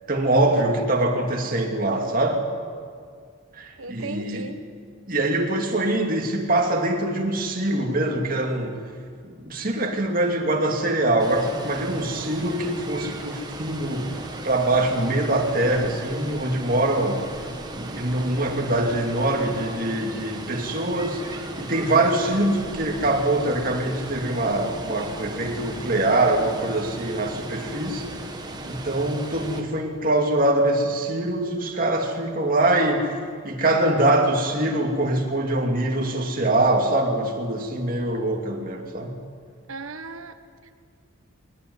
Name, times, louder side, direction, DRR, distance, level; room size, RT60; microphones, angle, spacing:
voice 1, 0.1-2.4 3.6-4.5 5.1-8.8 9.2-17.2 17.7-28.1 28.7-33.2 33.4-39.1, right 1 dB, 40° right, 1 dB, 2.6 m, -23 dB
voice 2, 3.8-4.6 39.7-40.4 40.6-40.7, right 3 dB, 75° right, 9 dB, 1.5 m, -36 dB
Water, 11.2-29.6, right 1 dB, 20° right, 1.7 m, -36 dB
21.5 x 18.0 x 9.7 m, 2.1 s
head